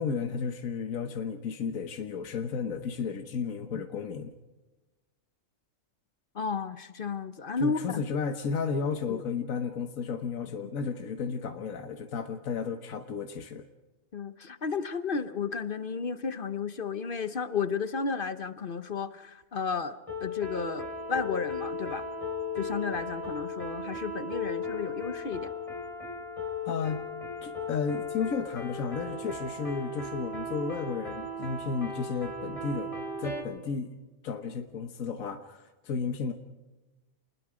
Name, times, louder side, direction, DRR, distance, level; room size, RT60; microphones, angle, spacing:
voice 1, 0.0-4.3 7.6-13.7 26.6-27.0 27.4-32.9 33.2-34.0 34.2-36.3, left 5 dB, 75° left, 6 dB, 1.5 m, -33 dB
voice 2, 6.3-8.0 9.1-9.2 14.1-22.0 22.6-25.5, left 5 dB, 45° left, 11 dB, 1.0 m, -33 dB
sound 1, 20.1-33.4, left 2 dB, 25° left, 3.3 m, -36 dB
28.5 x 20.5 x 4.9 m, 1.2 s
omnidirectional pair, 1.4 m